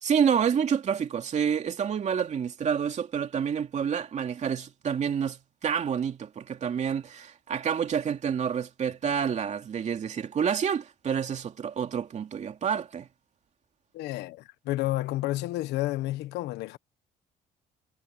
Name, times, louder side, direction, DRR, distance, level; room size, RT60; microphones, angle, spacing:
voice 1, 0.0-13.1, right 7 dB, 45° right, 2.8 m, -28 dB
voice 2, 13.9-16.8, left 17 dB, 85° left, 1.3 m, -30 dB
cardioid pair, 110°, 17 cm